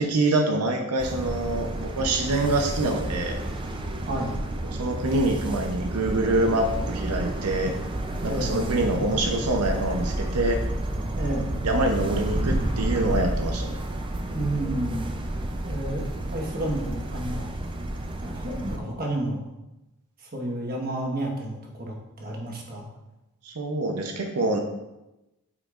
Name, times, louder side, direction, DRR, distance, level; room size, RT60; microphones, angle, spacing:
voice 1, 0.0-3.4 4.6-7.7 8.2-10.6 11.6-13.8 23.4-24.6, right 2 dB, 85° right, 3 dB, 0.8 m, -25 dB
sound 1, 1.0-18.8, right 1 dB, 20° right, 0.4 m, -30 dB
voice 2, 8.3-8.6 11.1-11.5 14.3-15.2 15.6-17.5 18.2-19.4 20.2-22.9, right 1 dB, 40° right, -1 dB, 1.3 m, -31 dB
8.3 x 5.0 x 2.5 m, 0.96 s
head